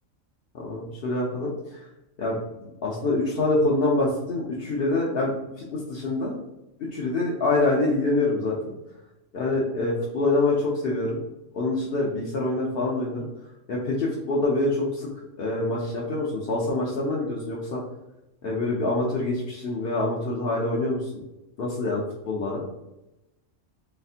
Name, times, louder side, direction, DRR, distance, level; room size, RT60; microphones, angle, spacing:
voice 1, 0.5-1.8 2.2-2.4 2.8-5.3 5.6-6.4 6.9-8.7 9.3-11.2 11.5-13.3 13.7-15.1 15.4-17.8 18.4-21.1 21.6-22.6, left 2 dB, 55° left, -4 dB, 0.8 m, -25 dB
4.1 x 3.3 x 2.7 m, 0.93 s
omnidirectional pair, 1.4 m